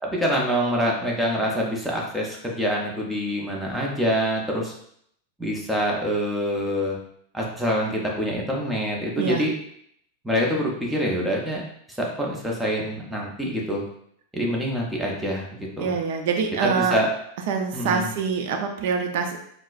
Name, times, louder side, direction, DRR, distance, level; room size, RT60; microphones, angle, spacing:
voice 1, 0.0-4.7 5.4-7.0 7.3-9.5 10.2-11.6 12.0-13.8 14.3-15.9 16.6-17.1 17.7-18.1, equal, 5° right, -2 dB, 0.6 m, -25 dB
voice 2, 15.8-17.0 17.5-19.4, right 5 dB, 65° right, 4 dB, 0.5 m, -25 dB
4.1 x 2.0 x 2.4 m, 0.69 s
supercardioid pair, 150°, 0 cm